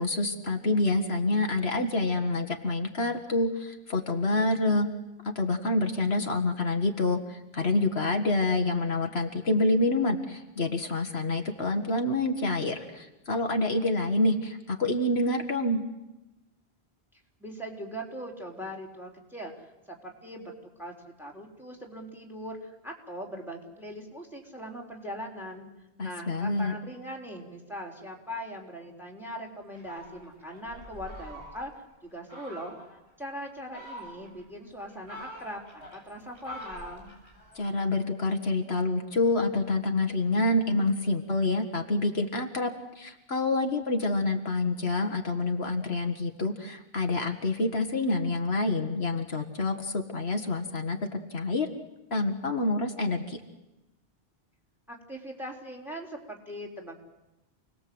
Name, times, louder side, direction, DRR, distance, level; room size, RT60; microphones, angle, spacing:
voice 1, 0.0-4.9 5.4-15.8 26.0-26.8 37.6-51.7 52.1-53.4, left 2 dB, 75° left, 5 dB, 2.0 m, -27 dB
voice 2, 17.4-25.7 26.0-31.7 32.0-32.7 33.2-37.1 54.9-57.0, equal, ahead, 1 dB, 4.0 m, -40 dB
Fowl, 29.7-31.8 32.3-32.9 33.5-34.4 34.9-37.6, equal, 90° right, 7.0 m, -45 dB
29.0 x 20.5 x 7.9 m, 0.99 s
omnidirectional pair, 1.1 m